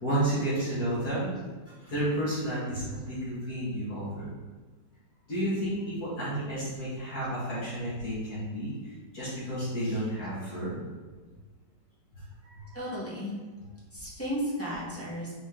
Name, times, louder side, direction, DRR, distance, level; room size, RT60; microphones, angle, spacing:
voice 1, 0.0-1.3 1.7-4.2 5.3-10.8 12.5-12.7, right 1 dB, 55° left, -10 dB, 2.3 m, -31 dB
voice 2, 12.7-13.4 13.9-15.3, equal, 10° left, -9 dB, 1.5 m, -34 dB
6.3 x 3.9 x 3.8 m, 1.3 s
omnidirectional pair, 1.9 m